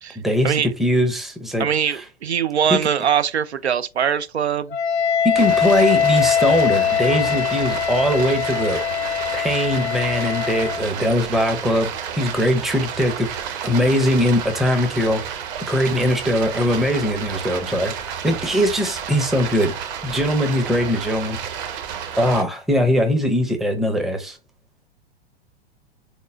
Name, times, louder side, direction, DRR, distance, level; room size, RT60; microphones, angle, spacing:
voice 1, 0.2-2.0 2.7-2.8 5.2-8.8 9.3-15.4 15.7-17.9 18.2-19.7 20.0-21.4 22.2-24.4, equal, ahead, 0.5 m, -21 dB
voice 2, 1.6-4.8, right 8 dB, 85° right, 0.5 m, -22 dB
Wind instrument woodwind instrument, 4.7-10.9, left 8 dB, 80° left, 0.6 m, -22 dB
Stream, 5.4-22.4, right 8 dB, 45° right, 0.9 m, -31 dB
3.9 x 3.6 x 2.5 m
figure-of-eight pair, 100°, 32 cm